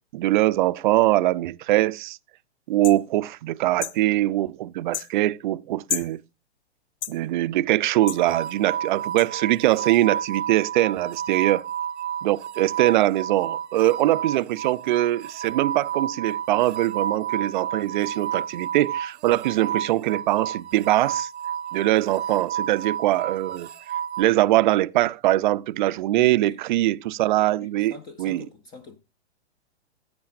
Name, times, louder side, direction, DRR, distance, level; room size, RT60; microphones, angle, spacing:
voice 1, 0.0-2.2 2.7-6.2 7.1-11.7 12.2-21.3 21.7-23.7 24.2-27.9 28.2-28.4, right 15 dB, 45° right, 0.5 m, -22 dB
sound 1, 2.8-3.0 3.8-4.0 4.9-5.1 5.9-6.1 7.0-7.2 8.1-8.2 9.2-9.3, left 11 dB, 80° left, 0.6 m, -30 dB
sound 2, 8.0-24.2, right 9 dB, 75° right, 0.8 m, -31 dB
voice 2, 26.1-26.6 27.2-29.0, left 4 dB, 15° left, 0.4 m, -44 dB
15.5 x 9.7 x 2.5 m
hypercardioid pair, 135°, 33 cm